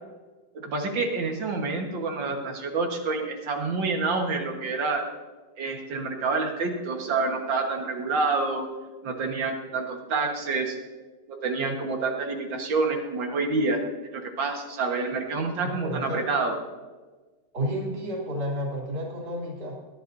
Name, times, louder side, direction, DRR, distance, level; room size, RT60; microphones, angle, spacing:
voice 1, 0.5-5.1 5.6-8.7 9.0-10.8 11.3-13.8 14.1-16.6, right 3 dB, 90° right, 2 dB, 2.2 m, -28 dB
voice 2, 15.6-16.2 17.5-19.8, equal, 60° right, -3 dB, 3.7 m, -31 dB
21.0 x 11.5 x 2.7 m, 1.3 s
omnidirectional pair, 2.0 m